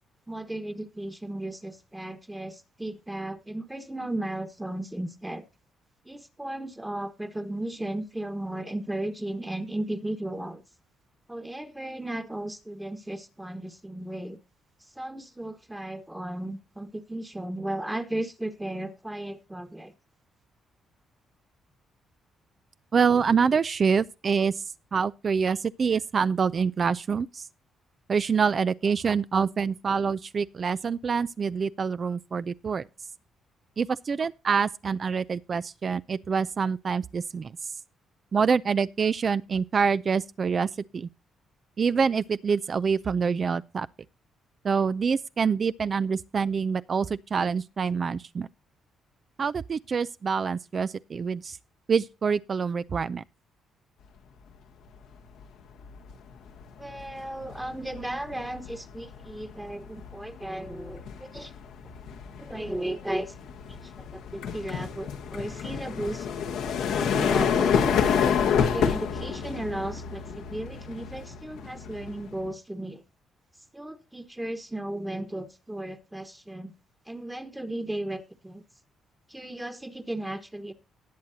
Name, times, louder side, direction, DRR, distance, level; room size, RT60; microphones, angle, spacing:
voice 1, 0.3-5.4 6.0-10.6 11.3-14.4 15.0-19.9 56.8-61.5 62.4-63.3 63.8-66.3 66.9-68.1 68.5-73.0 73.7-76.7 77.1-78.6 79.3-80.7, right 1 dB, 10° right, 1.3 m, -35 dB
voice 2, 22.9-24.5 24.9-27.4 28.1-32.8 33.8-37.5 38.3-40.7 40.9-41.1 41.8-43.9 44.6-47.1 47.3-48.5 49.4-51.6 51.9-53.2, right 6 dB, 45° right, 0.4 m, -26 dB
sound 1, 55.1-55.4 55.8-72.5, left 7 dB, 90° left, 1.5 m, -29 dB
18.5 x 7.3 x 2.8 m
cardioid pair, 90°, 0 cm